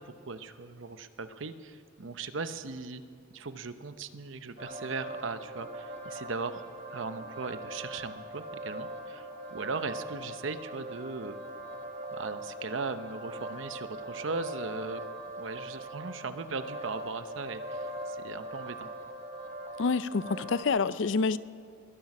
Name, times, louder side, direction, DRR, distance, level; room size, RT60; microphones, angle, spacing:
voice 1, 0.0-3.0 3.3-11.4 12.1-15.0 15.4-18.9, right 4 dB, 75° right, 11 dB, 0.8 m, -38 dB
sound 1, 4.6-20.6, right 1 dB, 30° right, 1.7 m, -41 dB
voice 2, 19.8-21.4, left 4 dB, 70° left, 16 dB, 0.5 m, -27 dB
21.5 x 11.0 x 6.1 m, 2.3 s
head